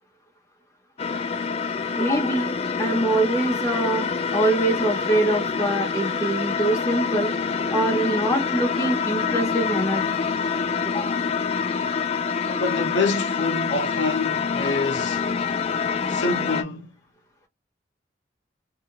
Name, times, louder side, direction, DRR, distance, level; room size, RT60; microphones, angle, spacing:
sound 1, 1.0-16.6, left 5 dB, 35° left, 0.3 m, -26 dB
voice 1, 2.0-7.3 7.7-10.0 10.8-11.1, right 1 dB, 15° left, 0.7 m, -24 dB
voice 2, 12.4-15.3 16.1-16.9, left 3 dB, 75° left, 0.7 m, -27 dB
2.7 x 2.4 x 2.8 m
head